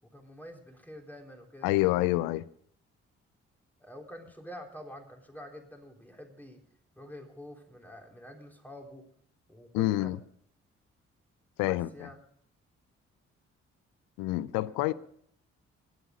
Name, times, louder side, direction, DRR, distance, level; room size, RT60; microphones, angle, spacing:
voice 1, 0.0-2.2 3.8-6.6 7.0-9.1 9.5-10.1 11.6-12.2 14.8-14.9, equal, 5° left, 3.6 m, -47 dB
voice 2, 1.6-2.5 9.7-10.2 11.6-12.1 14.2-14.9, left 18 dB, 80° left, 0.5 m, -27 dB
21.0 x 8.3 x 5.1 m
hypercardioid pair, 40°, 33 cm